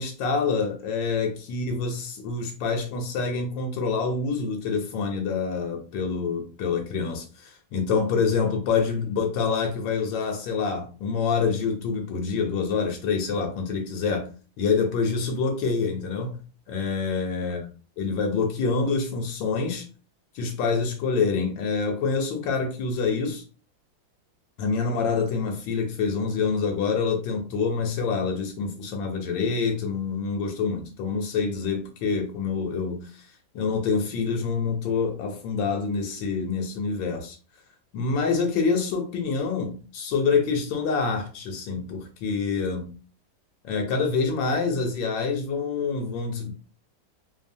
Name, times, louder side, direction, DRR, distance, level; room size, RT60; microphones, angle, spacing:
voice 1, 0.0-14.3 14.6-16.4 16.7-17.7 18.0-19.8 20.3-23.4 24.6-33.3 33.5-37.4 37.9-42.9 43.6-46.5, left 5 dB, 75° left, 1.2 m, -26 dB
3.2 x 2.0 x 2.5 m
omnidirectional pair, 2.2 m